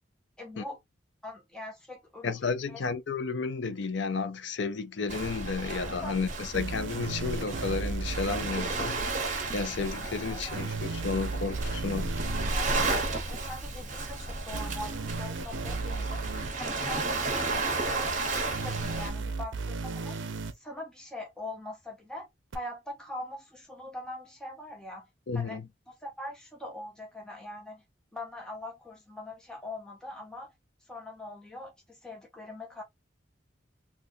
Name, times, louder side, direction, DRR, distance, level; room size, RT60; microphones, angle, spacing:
voice 1, 0.4-0.8 1.2-2.4 2.7-2.8 6.0-6.2 10.2-10.7 12.5-16.2 16.6-20.2 20.5-22.3 22.5-25.1 25.3-25.6 25.9-27.8 28.1-30.5 30.8-32.8, left 1 dB, 5° left, 0.8 m, -42 dB
voice 2, 2.2-9.0 9.5-12.1 25.3-25.7, left 4 dB, 65° left, 0.5 m, -32 dB
Waves surf, 5.1-19.1, right 3 dB, 40° right, 1.0 m, -33 dB
sound 1, 6.5-8.5 10.5-12.5 14.5-16.5 18.5-20.5 22.5-22.6, right 4 dB, 75° right, 0.5 m, -35 dB
3.8 x 2.4 x 2.6 m
head